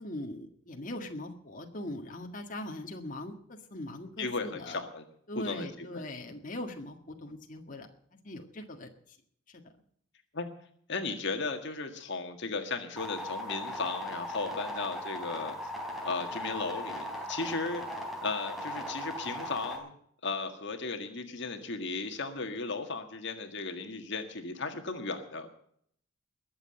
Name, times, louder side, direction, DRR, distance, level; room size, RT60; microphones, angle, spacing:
voice 1, 0.0-4.8 5.3-7.9 8.2-9.2 9.5-9.6, left 1 dB, 40° left, 2 dB, 1.8 m, -41 dB
voice 2, 4.2-5.0 5.4-6.0 10.3-10.5 10.9-15.6 16.0-17.8 18.2-20.0 20.2-25.5, left 3 dB, 55° left, 5 dB, 1.7 m, -35 dB
sound 1, 13.0-19.8, left 1 dB, ahead, 3.8 m, -38 dB
21.5 x 7.7 x 7.8 m, 0.66 s
head